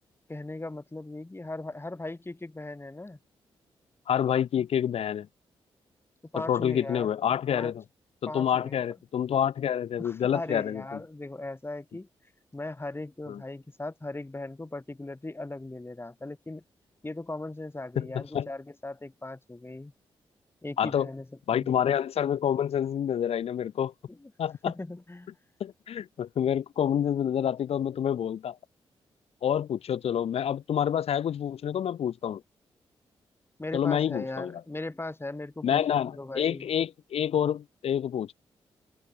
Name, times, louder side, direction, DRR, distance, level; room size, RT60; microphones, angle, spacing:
voice 1, 0.3-3.2 6.3-7.1 7.5-7.7 8.3-8.8 10.0-12.1 12.5-16.6 17.0-19.9 20.6-21.3 21.5-21.7 24.1-24.3 24.7-25.3 33.6-36.7, left 2 dB, 20° left, 7.4 m, -38 dB
voice 2, 4.1-5.3 6.4-7.8 8.2-11.0 13.3-13.4 18.0-18.5 20.8-21.1 21.5-23.9 24.4-24.7 25.6-28.6 29.4-32.4 33.7-34.6 35.6-38.3, left 9 dB, 75° left, 1.7 m, -28 dB
supercardioid pair, 50°, 10 cm